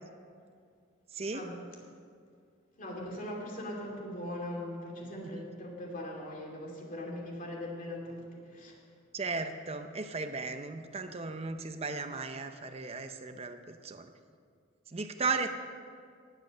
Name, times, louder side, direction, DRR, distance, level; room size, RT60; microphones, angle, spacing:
voice 1, 1.1-1.4 5.2-5.5 9.1-14.1 14.9-15.5, right 4 dB, 30° right, 7 dB, 0.6 m, -36 dB
voice 2, 2.8-8.8, left 1 dB, 40° left, -1 dB, 2.7 m, -40 dB
18.0 x 8.2 x 6.5 m, 2.2 s
head